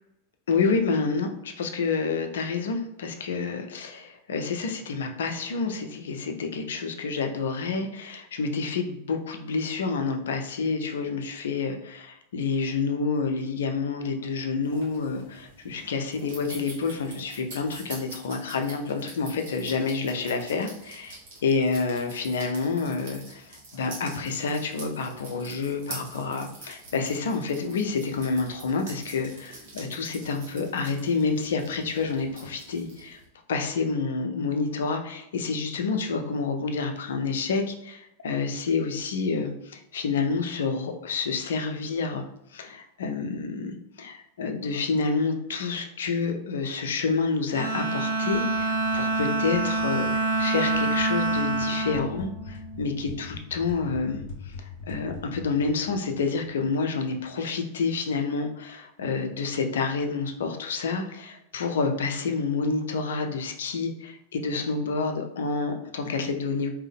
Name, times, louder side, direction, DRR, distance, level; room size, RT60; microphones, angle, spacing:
voice 1, 0.5-33.2 33.5-42.2 42.5-66.7, left 4 dB, 60° left, 5 dB, 0.5 m, -28 dB
sound 1, 14.6-33.2, right 2 dB, 55° right, 1.5 m, -46 dB
Bowed string instrument, 47.5-53.1, right 2 dB, 70° right, 0.5 m, -27 dB
sound 2, 48.3-57.0, left 5 dB, 45° left, 1.0 m, -44 dB
3.6 x 2.9 x 3.3 m, 0.82 s
figure-of-eight pair, 90°, 0 cm